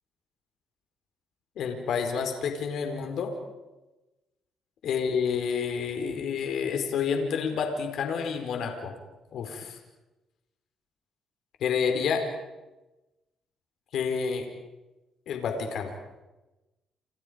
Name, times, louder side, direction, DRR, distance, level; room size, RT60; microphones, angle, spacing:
voice 1, 1.6-3.3 4.8-8.9 9.3-9.8 11.6-12.2 13.9-14.5 15.3-15.9, left 6 dB, 75° left, 5 dB, 4.6 m, -29 dB
29.5 x 29.0 x 5.2 m, 1.0 s
cardioid pair, 90°, 0 cm